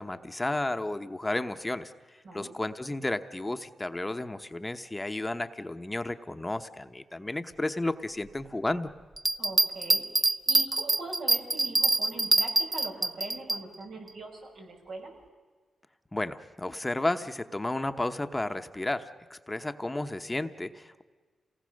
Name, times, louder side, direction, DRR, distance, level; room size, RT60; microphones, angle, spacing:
voice 1, 0.0-1.9 2.3-8.9 16.1-21.0, left 2 dB, 20° left, 8 dB, 1.0 m, -32 dB
Bell, 9.2-13.6 14.1-14.2, right 2 dB, 30° right, 0.7 m, -25 dB
voice 2, 9.4-15.1, right 2 dB, 80° right, -1 dB, 6.1 m, -42 dB
27.5 x 19.0 x 6.5 m, 1.4 s
cardioid pair, 65°, 0 cm